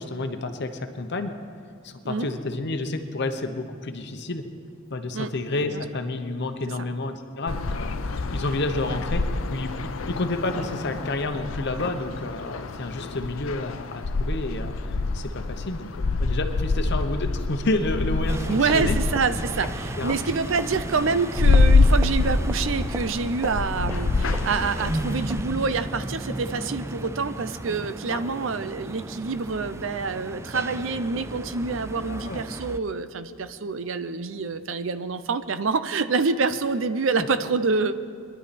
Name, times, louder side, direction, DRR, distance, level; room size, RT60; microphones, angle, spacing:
voice 1, 0.0-1.3 1.8-4.5 4.9-15.9 16.2-19.0 20.0-20.2 20.9-21.0 28.1-28.2 32.1-32.4 33.2-33.4 37.2-37.3, left 2 dB, 60° left, 7 dB, 0.9 m, -30 dB
sound 1, 7.5-25.4, left 3 dB, 90° left, 0.7 m, -26 dB
sound 2, 18.3-32.8, right 1 dB, 15° right, 0.3 m, -34 dB
voice 2, 18.5-37.9, right 4 dB, 70° right, 11 dB, 0.7 m, -27 dB
22.5 x 11.0 x 4.3 m, 2.2 s
head